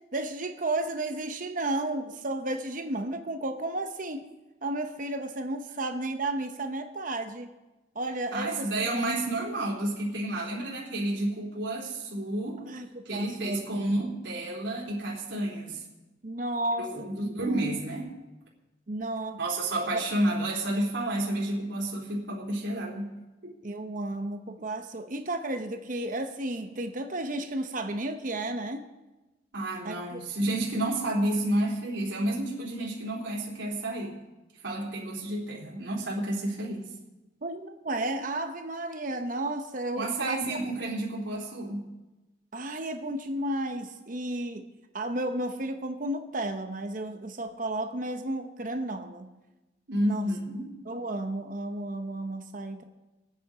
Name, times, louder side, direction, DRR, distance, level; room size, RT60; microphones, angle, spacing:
voice 1, 0.1-4.2 4.6-7.5 7.9-9.2 12.7-13.7 16.2-17.6 18.9-19.4 19.9-20.0 23.6-28.8 29.8-30.2 37.4-40.7 42.5-44.6 44.9-49.3 50.0-50.3 50.9-52.8, right 2 dB, 45° right, 6 dB, 0.9 m, -33 dB
voice 2, 8.3-12.6 13.1-15.8 16.8-18.1 19.4-23.1 23.4-23.5 29.5-34.2 34.6-36.9 38.0-38.1 40.0-41.9 49.9-50.7, right 1 dB, 80° right, -4 dB, 3.5 m, -30 dB
21.5 x 9.1 x 5.0 m, 1.1 s
head